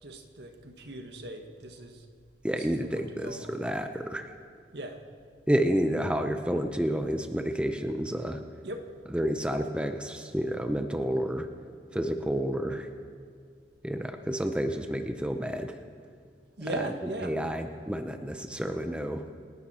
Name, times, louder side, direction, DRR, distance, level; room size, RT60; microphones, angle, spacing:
voice 1, 0.0-2.0 2.5-3.7 4.7-5.0 8.6-8.8 16.6-17.4, right 2 dB, 70° right, 5 dB, 1.6 m, -39 dB
voice 2, 2.4-4.3 5.5-8.4 9.1-11.5 11.9-12.9 13.8-15.8 17.2-19.2, equal, 5° right, 6 dB, 0.7 m, -30 dB
28.5 x 11.5 x 4.4 m, 2.2 s
head